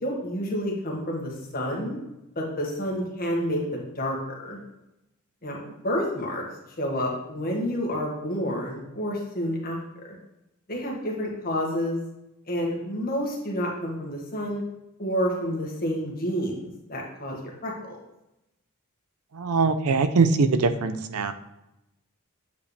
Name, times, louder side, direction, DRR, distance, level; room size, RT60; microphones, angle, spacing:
voice 1, 0.0-2.0 2.3-4.6 5.4-6.4 6.8-9.8 10.7-12.0 12.5-14.6 15.0-18.0, equal, 45° left, -2 dB, 1.7 m, -29 dB
voice 2, 19.3-21.3, right 4 dB, 90° right, 11 dB, 0.6 m, -22 dB
8.1 x 5.1 x 3.3 m, 0.90 s
head